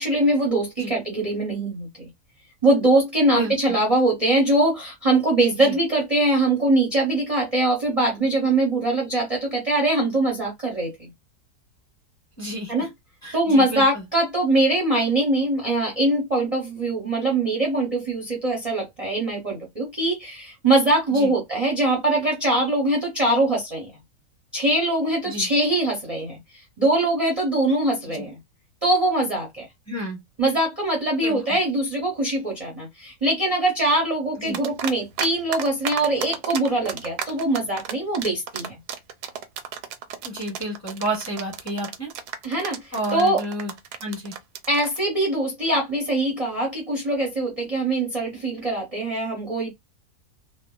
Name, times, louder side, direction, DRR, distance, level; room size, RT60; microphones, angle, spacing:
voice 1, 0.0-2.1 2.6-11.1 12.7-12.9 13.3-23.9 24.5-26.4 26.8-28.4 28.8-29.7 30.4-38.7 42.4-43.4 44.7-49.7, right 2 dB, 40° right, 0.5 m, -22 dB
voice 2, 3.3-3.8 5.6-5.8 12.4-12.9 13.2-14.0 21.1-21.3 25.2-25.5 28.2-28.3 29.9-30.2 31.2-31.6 34.4-34.6 40.2-42.1 42.9-43.7 44.0-44.3, equal, 15° left, 0.9 m, -31 dB
sound 1, 34.5-35.3 35.5-45.0, right 8 dB, 80° right, 1.1 m, -32 dB
3.1 x 2.1 x 2.3 m
omnidirectional pair, 1.7 m